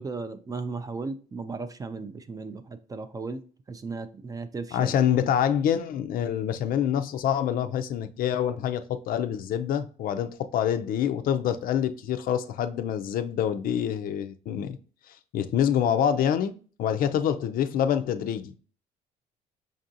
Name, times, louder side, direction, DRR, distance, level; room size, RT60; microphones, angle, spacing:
voice 1, 0.0-3.4 3.7-4.9, right 4 dB, 20° right, 0.3 m, -36 dB
voice 2, 4.7-14.8 15.3-16.5 16.8-18.6, left 9 dB, 60° left, 0.4 m, -26 dB
5.2 x 2.5 x 2.7 m
cardioid pair, 110°, 17 cm